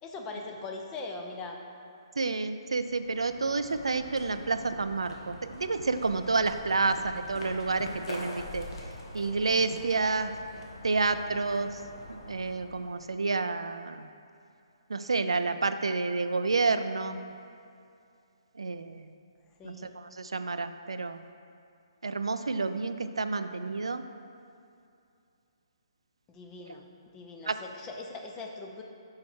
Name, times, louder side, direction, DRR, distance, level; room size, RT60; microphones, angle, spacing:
voice 1, 0.0-1.6 19.6-19.9 26.3-26.9 27.1-28.8, left 3 dB, 20° left, 2 dB, 0.6 m, -41 dB
voice 2, 2.2-8.7 9.1-10.3 10.8-11.8 12.1-14.1 14.9-17.2 18.6-19.1 19.6-21.2 22.0-24.0 27.5-27.6, right 3 dB, 85° right, 10 dB, 0.3 m, -29 dB
sound 1, 2.7-13.4, left 1 dB, 70° left, 1.3 m, -45 dB
6.2 x 4.7 x 4.5 m, 2.5 s
hypercardioid pair, 145°, 3 cm